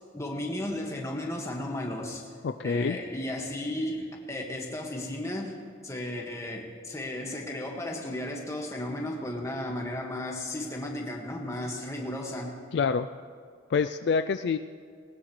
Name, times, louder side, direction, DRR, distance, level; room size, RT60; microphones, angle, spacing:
voice 1, 0.1-2.3 2.6-5.6 5.8-12.6, left 1 dB, 15° left, 0 dB, 1.7 m, -34 dB
voice 2, 2.4-3.0 12.7-13.1 13.7-14.6, left 5 dB, 60° left, 9 dB, 0.3 m, -26 dB
19.5 x 19.0 x 3.2 m, 2.1 s
head